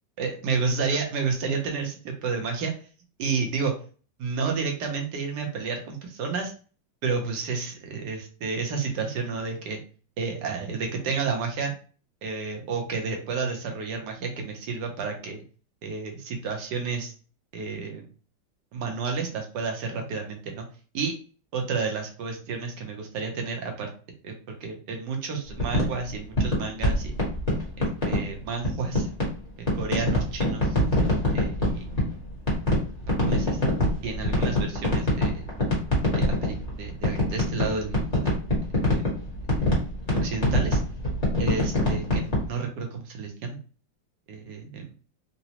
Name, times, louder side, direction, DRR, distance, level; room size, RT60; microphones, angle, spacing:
voice 1, 0.2-2.7 3.2-3.7 4.2-6.5 7.0-9.8 10.2-11.7 12.2-15.4 15.8-17.1 17.5-18.0 18.7-20.6 20.9-21.2 21.5-23.9 24.2-27.1 28.1-29.1 29.6-30.8 31.3-32.0 33.2-33.6 34.0-35.4 36.1-38.4 38.9-39.1 40.2-40.8 41.4-43.6 44.3-44.9, right 5 dB, 65° right, 2 dB, 1.3 m, -31 dB
sound 1, 25.5-28.2 28.6-29.4 29.7-32.2 32.5-42.5, left 1 dB, 25° left, 1.0 m, -24 dB
3.9 x 2.1 x 2.8 m, 0.39 s
omnidirectional pair, 2.1 m